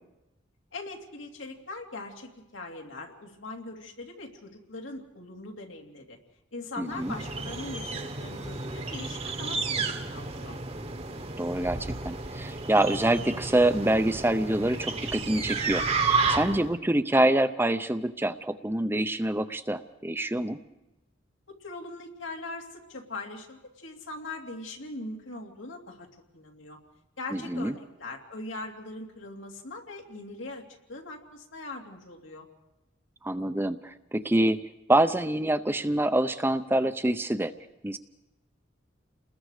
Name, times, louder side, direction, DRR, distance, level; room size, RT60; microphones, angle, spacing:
voice 1, 0.7-6.2 6.5-10.6 21.5-26.1 26.3-26.8 27.2-30.6 30.9-32.5, left 2 dB, 85° left, 1 dB, 2.9 m, -41 dB
voice 2, 6.8-7.1 11.4-20.6 27.3-27.7 33.2-37.5 37.8-38.0, right 1 dB, 10° right, 10 dB, 0.6 m, -26 dB
sound 1, 6.9-16.7, right 4 dB, 30° right, 1.2 m, -32 dB
29.0 x 20.5 x 4.9 m, 0.97 s
head